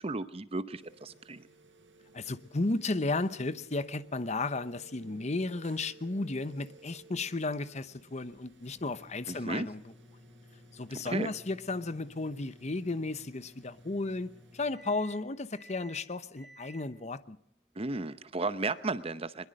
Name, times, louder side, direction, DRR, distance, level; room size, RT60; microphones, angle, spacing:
voice 1, 0.0-1.4 9.3-9.7 11.1-11.3 17.8-19.5, right 3 dB, 30° right, 0.8 m, -34 dB
sound 1, 0.8-14.7, right 3 dB, 85° right, 5.9 m, -59 dB
voice 2, 2.1-9.9 10.7-17.4, left 2 dB, 35° left, 0.9 m, -34 dB
sound 2, 8.3-18.6, equal, ahead, 6.9 m, -57 dB
22.5 x 21.5 x 6.5 m
head